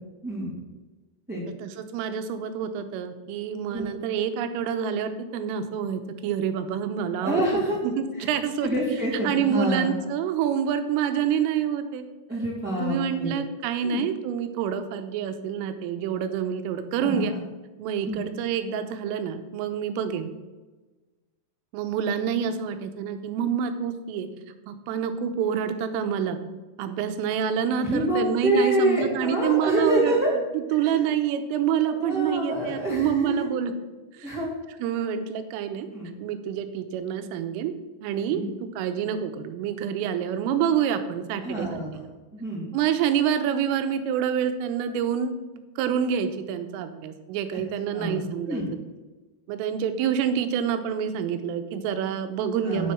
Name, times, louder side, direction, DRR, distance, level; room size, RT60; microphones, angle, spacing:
voice 1, 1.6-7.4 7.8-8.7 9.2-12.0 12.8-17.3 17.8-20.3 21.7-24.3 24.7-26.4 26.8-30.1 30.5-33.7 34.2-34.4 34.8-35.9 36.2-37.7 38.0-42.1 42.7-48.6 49.5-52.9, right 8 dB, 80° right, 8 dB, 3.4 m, -27 dB
voice 2, 7.2-7.8 8.2-8.3 8.6-9.9 12.3-13.3 13.8-14.0 17.0-17.2 18.0-18.2 27.8-30.3 30.9-31.0 31.8-33.5 34.2-34.5 35.9-36.1 38.3-38.5 41.4-42.0 42.3-42.7 47.9-48.7 52.6-52.9, right 1 dB, 5° right, -7 dB, 2.1 m, -27 dB
10.0 x 7.5 x 6.2 m, 1.2 s
omnidirectional pair, 5.9 m